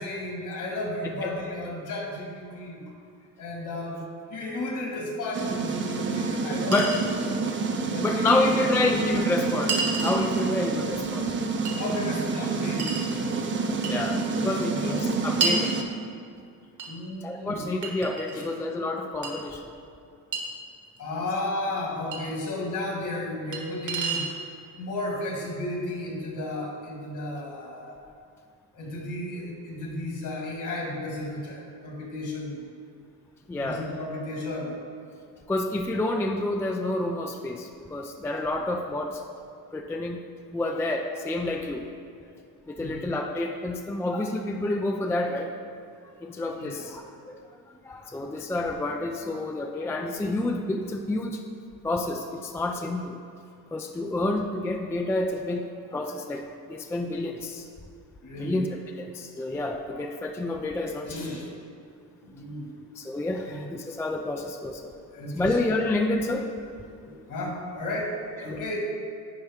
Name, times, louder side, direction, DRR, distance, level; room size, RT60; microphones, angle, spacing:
voice 1, 0.0-2.8 3.4-4.0 4.3-6.7 7.1-7.2 7.9-9.0 11.8-13.9 14.7-15.2 16.9-17.7 18.3-18.5 21.0-24.3 24.8-28.0 28.7-32.6 33.6-34.7 42.8-43.1 46.6-46.8 58.2-58.7 59.9-60.1 61.0-61.5 62.2-62.8 63.5-63.7 65.1-65.5 66.7-68.1 68.4-68.8, left 1 dB, 55° left, -1 dB, 1.8 m, -34 dB
sound 1, 5.3-15.8, right 4 dB, 30° right, 0.6 m, -28 dB
Chink clink, 5.7-5.8 6.7-7.1 8.3-8.4 9.7-10.2 11.7-11.8 12.8-13.1 13.8-14.0 15.4-15.6 16.8-16.9 17.8-18.6 19.2-19.3 20.3-20.4 22.1-22.2 23.5-23.6 23.9-24.4, right 4 dB, 55° right, 1.4 m, -29 dB
voice 2, 8.0-11.3 13.8-15.8 17.2-19.7 33.5-33.8 35.5-39.3 39.7-40.2 40.5-41.9 42.7-45.5 46.2-47.4 47.7-51.4 51.8-53.2 53.7-55.7 55.9-56.4 56.7-57.7 58.4-58.7 59.0-61.2 63.0-64.9 65.3-66.5 68.4-68.6, left 2 dB, 10° left, 3 dB, 0.3 m, -29 dB
9.9 x 4.6 x 3.5 m, 2.4 s
cardioid pair, 105°, 37 cm